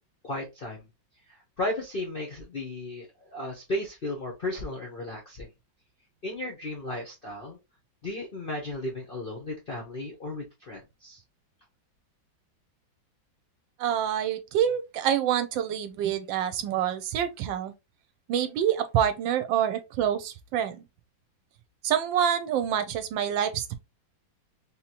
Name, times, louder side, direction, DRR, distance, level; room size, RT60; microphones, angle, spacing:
voice 1, 0.2-0.9 1.3-5.5 6.2-7.6 8.0-11.2, left 1 dB, 55° left, 0.6 m, -35 dB
voice 2, 13.8-17.7 18.3-20.8 21.8-23.7, right 9 dB, 80° right, 1.3 m, -27 dB
3.6 x 2.8 x 2.8 m
omnidirectional pair, 2.1 m